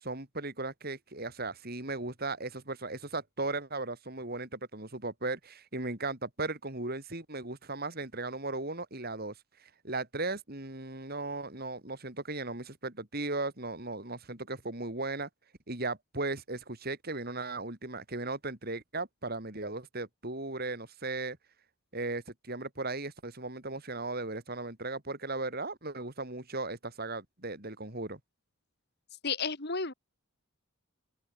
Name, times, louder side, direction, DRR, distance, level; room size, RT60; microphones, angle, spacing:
voice 1, 0.0-9.3 9.6-15.3 15.7-21.4 21.9-28.2, right 2 dB, 45° right, 3.6 m, -37 dB
voice 2, 29.2-29.9, left 5 dB, 50° left, 2.4 m, -32 dB
open air
head